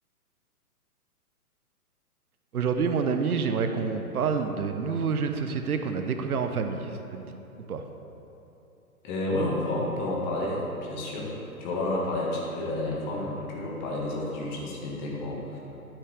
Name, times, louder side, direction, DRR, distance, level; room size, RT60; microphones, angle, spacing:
voice 1, 2.5-7.4 7.7-7.8, right 5 dB, 70° right, 7 dB, 0.7 m, -28 dB
voice 2, 9.0-11.3 11.6-15.6, left 1 dB, 30° left, -3 dB, 1.7 m, -30 dB
13.5 x 5.6 x 3.5 m, 3.0 s
figure-of-eight pair, 125°, 46 cm